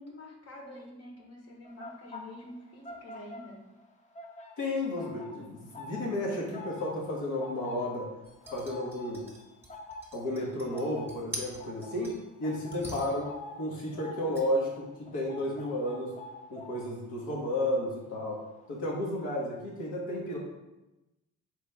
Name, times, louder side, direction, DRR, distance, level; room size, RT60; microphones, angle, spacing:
voice 1, 0.0-3.6, left 1 dB, 55° left, 0 dB, 1.2 m, -47 dB
sound 1, 1.6-19.0 19.3-19.6, left 2 dB, 25° left, 0.6 m, -47 dB
voice 2, 4.6-8.1 8.5-9.2 10.1-16.1 16.5-18.4 18.7-20.4, left 1 dB, 90° left, -2 dB, 1.2 m, -32 dB
sound 2, 8.2-12.3 12.7-13.4 14.3-14.5, right 1 dB, 5° right, 1.0 m, -45 dB
4.3 x 3.2 x 3.3 m, 0.99 s
cardioid pair, 90°, 30 cm